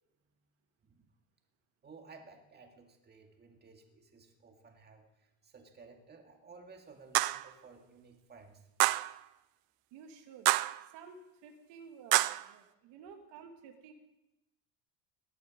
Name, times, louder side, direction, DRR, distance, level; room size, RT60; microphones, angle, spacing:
voice 1, 1.8-8.6, right 4 dB, 20° right, 3 dB, 2.0 m, -56 dB
sound 1, 7.1-7.5 8.8-9.1 10.5-10.8 12.1-12.4, right 19 dB, 55° right, 0.5 m, -27 dB
voice 2, 9.9-10.5 10.8-13.9, right 6 dB, 75° right, 5 dB, 1.8 m, -52 dB
18.5 x 11.5 x 5.1 m, 0.96 s
cardioid pair, 140°, 43 cm